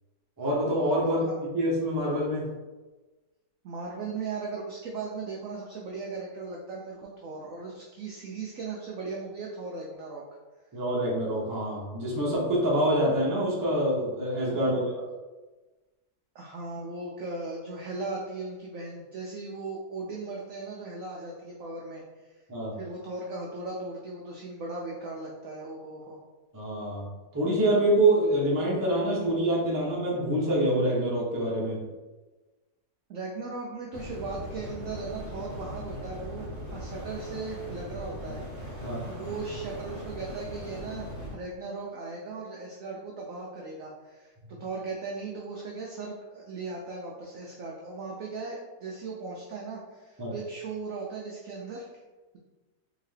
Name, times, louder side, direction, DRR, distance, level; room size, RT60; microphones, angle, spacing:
voice 1, 0.4-2.5 10.7-15.0 22.5-22.7 26.5-27.0 27.3-31.8 38.8-39.0 50.2-50.3, right 1 dB, 20° right, -5 dB, 0.5 m, -26 dB
voice 2, 1.0-1.4 3.6-10.2 14.5-14.8 16.3-22.4 22.8-26.2 33.1-44.3 44.6-51.9, right 3 dB, 75° right, -2 dB, 0.7 m, -38 dB
sound 1, 33.9-41.3, equal, 70° left, 1.8 m, -39 dB
3.6 x 2.8 x 3.2 m, 1.2 s
omnidirectional pair, 1.9 m